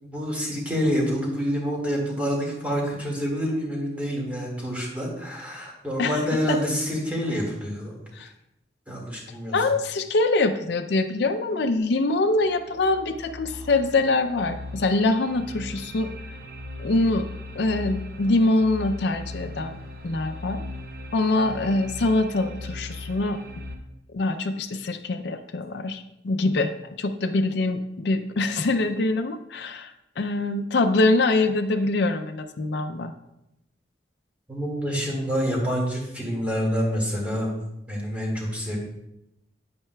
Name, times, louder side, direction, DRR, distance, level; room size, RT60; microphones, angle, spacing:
voice 1, 0.0-8.0 8.9-9.6 34.5-37.5 37.9-38.8, equal, 10° right, -3 dB, 2.0 m, -27 dB
voice 2, 9.5-16.1 16.8-17.3 17.6-19.8 20.0-20.6 21.1-23.4 24.1-26.7 27.0-29.9 30.2-33.1, left 2 dB, 70° left, 6 dB, 0.5 m, -24 dB
sound 1, 12.4-23.8, left 1 dB, 55° right, 0.8 m, -39 dB
9.4 x 8.7 x 2.3 m, 0.86 s
head